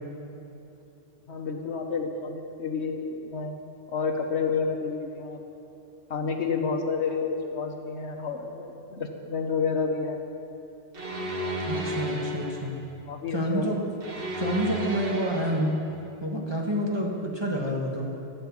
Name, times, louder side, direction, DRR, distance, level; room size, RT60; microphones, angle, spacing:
voice 1, 1.3-3.6 3.9-5.4 6.1-10.2 13.1-13.7, left 5 dB, 70° left, 4 dB, 1.3 m, -30 dB
sound 1, 10.9-12.7 14.0-15.7, equal, 50° right, 1.6 m, -33 dB
voice 2, 11.6-12.8 13.3-13.8 14.4-15.8 16.2-18.1, equal, 20° right, -2 dB, 1.5 m, -28 dB
13.5 x 8.0 x 7.3 m, 2.9 s
omnidirectional pair, 1.2 m